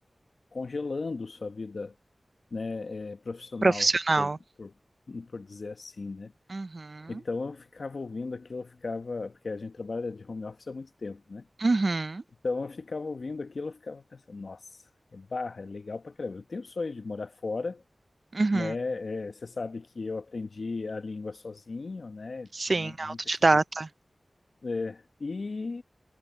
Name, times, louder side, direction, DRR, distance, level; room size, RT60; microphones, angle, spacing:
voice 1, 0.5-2.0 2.5-3.9 4.2-4.3 4.6-4.7 5.1-6.3 7.1-11.5 12.4-14.6 15.1-17.8 18.5-23.6 24.6-25.8, left 3 dB, 75° left, 1.2 m, -36 dB
voice 2, 3.6-4.4 6.5-7.1 11.6-12.2 18.3-18.7 22.5-23.9, right 3 dB, 55° right, 0.5 m, -25 dB
wide cardioid pair, 65°, 0 cm